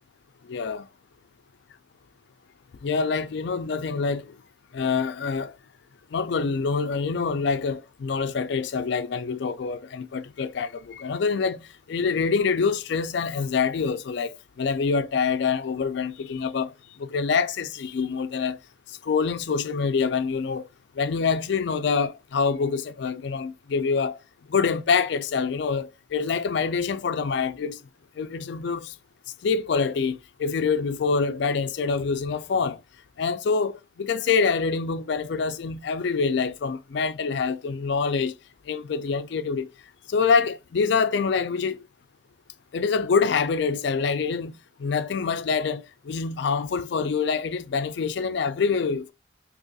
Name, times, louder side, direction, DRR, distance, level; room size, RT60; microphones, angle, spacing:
voice 1, 0.5-0.9 2.8-4.4 4.7-5.5 6.1-18.6 18.9-20.7 21.0-24.2 24.5-27.8 28.2-28.9 29.4-32.8 33.2-38.3 38.7-39.7 40.1-41.8 42.7-49.1, left 5 dB, 60° left, 0.3 m, -26 dB
3.9 x 2.9 x 2.3 m
head